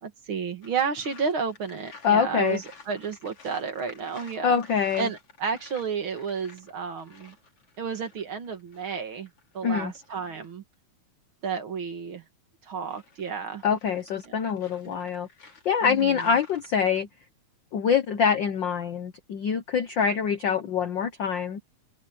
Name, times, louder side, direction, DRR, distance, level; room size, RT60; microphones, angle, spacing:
voice 1, 0.0-4.6 5.0-7.4 7.8-9.3 9.5-10.6 11.4-12.2 12.6-13.6 15.8-16.2, right 6 dB, 45° right, 2.4 m, -31 dB
sound 1, 0.6-10.5 12.6-17.0, left 4 dB, 50° left, 4.5 m, -52 dB
voice 2, 2.0-2.6 4.4-5.1 9.6-9.9 13.6-15.3 15.6-17.1 17.7-21.6, left 7 dB, 80° left, 1.0 m, -25 dB
open air
omnidirectional pair, 3.4 m